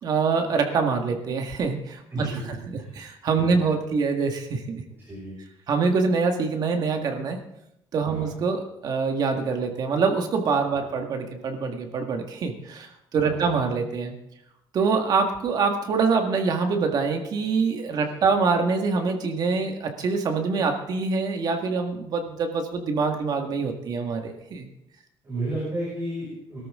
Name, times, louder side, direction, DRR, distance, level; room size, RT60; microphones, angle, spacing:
voice 1, 0.0-2.4 2.7-4.8 5.7-7.4 7.9-14.1 14.7-24.7, right 4 dB, 45° right, 4 dB, 1.8 m, -25 dB
voice 2, 3.4-3.7 5.0-5.4 8.1-8.3 13.2-13.5 18.0-18.2 25.2-26.6, right 1 dB, 20° right, -6 dB, 6.0 m, -33 dB
21.5 x 13.0 x 3.8 m, 0.78 s
cardioid pair, 175°, 10 cm